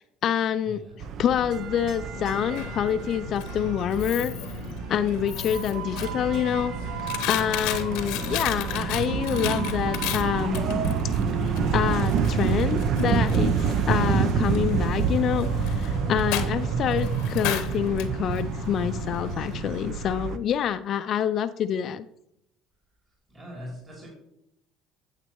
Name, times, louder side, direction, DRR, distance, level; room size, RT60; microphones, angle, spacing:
voice 1, 0.0-4.3 4.9-6.7 7.3-10.8 11.4-22.0, left 9 dB, 50° left, 10 dB, 0.4 m, -27 dB
sound 1, 1.0-20.4, right 6 dB, 60° right, 0.6 m, -28 dB
Coin (dropping), 2.1-19.9, left 10 dB, 80° left, 0.8 m, -35 dB
voice 2, 23.3-24.1, equal, 25° right, -3 dB, 2.9 m, -40 dB
9.0 x 7.5 x 3.0 m, 0.78 s
supercardioid pair, 100°, 0 cm